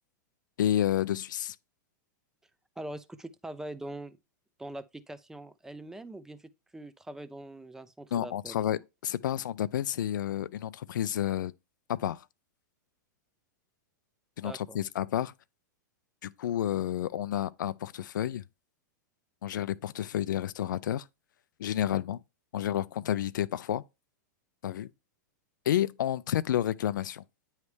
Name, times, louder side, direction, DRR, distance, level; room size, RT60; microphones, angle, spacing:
voice 1, 0.6-1.6 8.1-11.5 11.9-12.2 14.4-15.3 16.2-18.4 19.4-21.0 21.6-22.2 22.5-23.8 24.6-24.9 25.7-27.2, left 11 dB, 80° left, 0.4 m, -30 dB
voice 2, 2.8-4.2 4.6-8.6 14.4-14.8, right 1 dB, 5° right, 0.5 m, -42 dB
9.4 x 3.2 x 3.2 m
hypercardioid pair, 125°, 10 cm